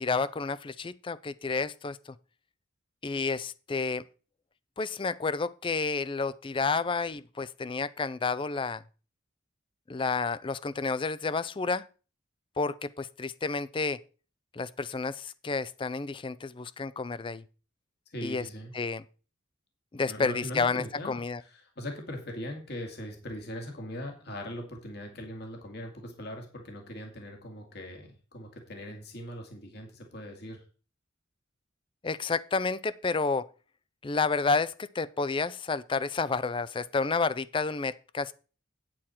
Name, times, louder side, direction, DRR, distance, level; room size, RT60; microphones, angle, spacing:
voice 1, 0.0-2.1 3.0-4.0 4.8-8.8 9.9-11.8 12.6-14.0 14.5-17.4 18.2-18.4 18.7-19.0 19.9-21.4 32.0-33.5 34.0-38.3, left 4 dB, 25° left, 0.4 m, -30 dB
voice 2, 18.1-18.7 20.1-30.6, equal, 55° left, 2.2 m, -40 dB
9.0 x 8.8 x 4.3 m
head